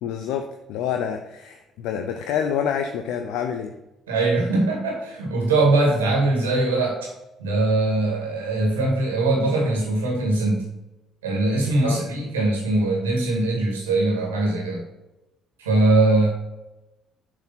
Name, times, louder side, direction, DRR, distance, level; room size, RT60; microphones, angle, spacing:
voice 1, 0.0-3.7 11.8-12.0, left 8 dB, 70° left, 5 dB, 0.6 m, -27 dB
voice 2, 4.1-7.1 7.4-10.7 11.2-14.8 15.6-16.3, right 2 dB, 90° right, -1 dB, 2.2 m, -21 dB
7.6 x 4.7 x 5.8 m, 0.98 s
hypercardioid pair, 50°, 0 cm